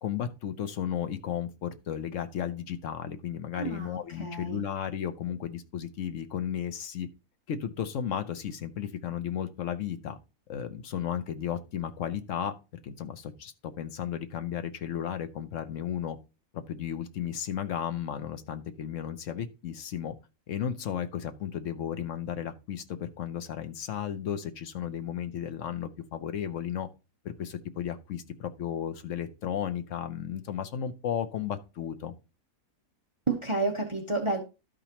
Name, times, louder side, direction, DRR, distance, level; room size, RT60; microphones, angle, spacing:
voice 1, 0.0-7.1 7.5-10.2 10.5-12.5 12.8-16.2 16.5-20.1 20.5-26.9 27.2-32.1, left 9 dB, 60° left, 1.0 m, -34 dB
voice 2, 3.5-4.6 33.3-34.4, right 3 dB, 25° right, 0.9 m, -30 dB
12.5 x 5.1 x 2.9 m
omnidirectional pair, 1.6 m